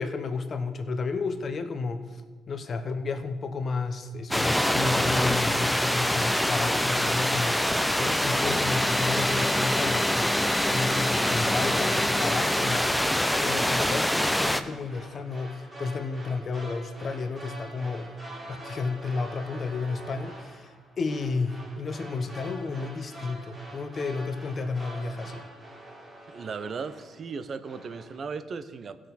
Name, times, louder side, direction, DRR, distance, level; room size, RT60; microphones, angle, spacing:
voice 1, 0.0-2.2 2.5-13.0 13.4-18.1 18.5-25.4, left 4 dB, 45° left, 7 dB, 1.0 m, -32 dB
sound 1, 4.3-14.6, left 1 dB, 5° left, 0.6 m, -25 dB
sound 2, 8.2-27.3 27.6-28.2, right 1 dB, 35° right, 2.4 m, -45 dB
voice 2, 26.3-29.0, right 5 dB, 50° right, 12 dB, 0.6 m, -37 dB
16.0 x 6.2 x 4.1 m, 1.5 s
cardioid pair, 90°, 0 cm